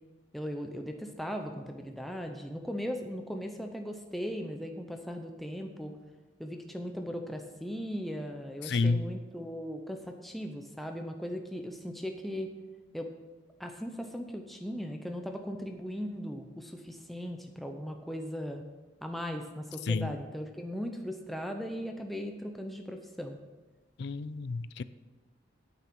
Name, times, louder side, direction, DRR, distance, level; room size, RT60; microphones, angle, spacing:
voice 1, 0.3-6.0 6.4-12.5 12.9-13.1 13.6-18.6 19.0-23.4, equal, ahead, 3 dB, 0.7 m, -38 dB
voice 2, 8.6-9.1 19.9-20.1 24.0-24.8, left 3 dB, 55° left, 15 dB, 0.4 m, -30 dB
8.8 x 8.8 x 6.1 m, 1.2 s
head